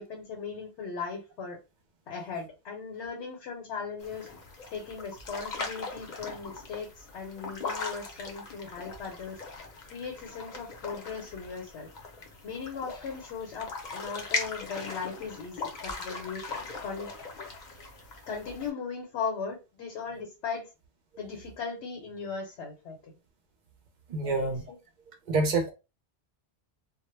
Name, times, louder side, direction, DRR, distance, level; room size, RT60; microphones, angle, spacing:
voice 1, 0.0-1.6 2.1-4.3 4.7-9.4 9.9-11.9 12.4-16.4 16.8-17.1 18.3-20.7 21.2-23.1 24.2-24.5, left 5 dB, 75° left, 0.9 m, -38 dB
sound 1, 4.0-18.7, left 3 dB, 50° left, 0.7 m, -39 dB
voice 2, 24.1-24.7 25.3-25.7, right 3 dB, 55° right, 0.5 m, -27 dB
2.1 x 2.0 x 3.0 m
omnidirectional pair, 1.1 m